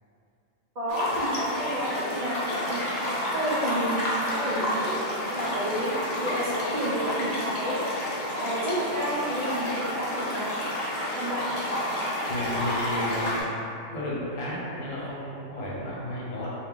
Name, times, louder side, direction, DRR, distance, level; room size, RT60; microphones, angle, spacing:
voice 1, 0.8-5.0 5.3-5.9 6.2-7.8 8.3-10.6 11.1-11.5, equal, 80° right, -9 dB, 0.3 m, -30 dB
sound 1, 0.9-13.4, equal, 60° left, 0.9 m, -30 dB
voice 2, 12.3-13.5 13.9-16.5, left 1 dB, 85° left, -7 dB, 1.2 m, -32 dB
2.6 x 2.2 x 3.7 m, 2.6 s
omnidirectional pair, 1.3 m